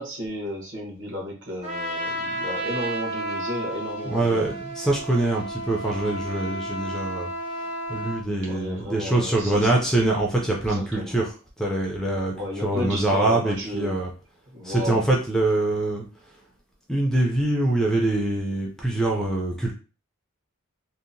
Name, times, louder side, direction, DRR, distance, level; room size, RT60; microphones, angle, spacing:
voice 1, 0.0-4.6 6.6-6.9 8.4-9.7 10.7-11.2 12.3-14.0 14.5-15.0, left 1 dB, 55° right, -2 dB, 1.0 m, -33 dB
Trumpet, 1.6-8.2, right 1 dB, 25° right, 0.7 m, -32 dB
voice 2, 4.1-7.3 7.9-11.3 11.6-12.3 12.6-14.1 14.6-16.0 16.9-19.7, right 2 dB, ahead, -1 dB, 0.3 m, -24 dB
2.8 x 2.0 x 2.5 m, 0.35 s
head